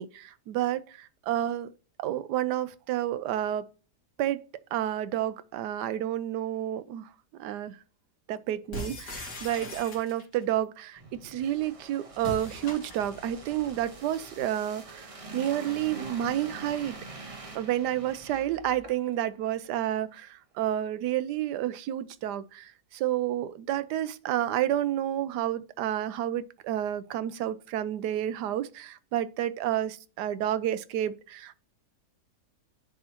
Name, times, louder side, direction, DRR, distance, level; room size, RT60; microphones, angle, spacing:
voice 1, 0.0-1.7 2.0-3.6 4.2-4.4 4.7-7.1 7.4-7.8 8.3-16.9 17.5-31.6, right 12 dB, 85° right, 1.2 m, -30 dB
sound 1, 8.7-10.4 12.2-13.3, left 1 dB, 75° left, 2.4 m, -40 dB
sound 2, 11.0-19.3 19.6-19.8, right 3 dB, 30° right, 0.7 m, -45 dB
10.5 x 3.7 x 2.9 m
omnidirectional pair, 1.7 m